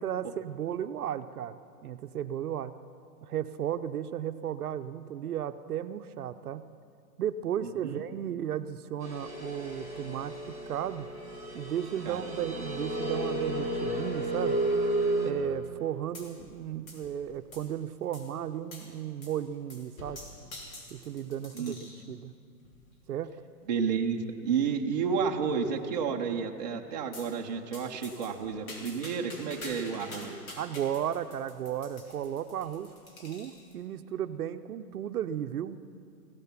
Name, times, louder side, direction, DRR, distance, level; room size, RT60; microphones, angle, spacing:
voice 1, 0.0-2.8 3.2-6.6 7.2-11.1 11.5-14.6 15.2-20.2 20.9-22.3 23.1-23.3 30.6-32.9 33.2-35.8, right 10 dB, 70° right, 10 dB, 0.7 m, -34 dB
voice 2, 7.6-8.0 12.1-12.2 21.5-21.7 22.1-22.2 23.7-30.4, right 6 dB, 30° right, 1 dB, 0.6 m, -31 dB
sound 1, 9.0-15.3, right 1 dB, 15° left, 0.8 m, -32 dB
sound 2, 16.1-16.6 16.9-17.8 18.1-18.3 18.7-18.9 19.2-19.4 19.7-22.0 22.6-23.0 23.6-23.7 24.1-24.2 24.5-24.6 25.0-25.5 27.1-27.3 27.7-33.7, left 2 dB, 55° left, 3.2 m, -47 dB
16.0 x 13.0 x 5.8 m, 2.5 s
hypercardioid pair, 165°, 47 cm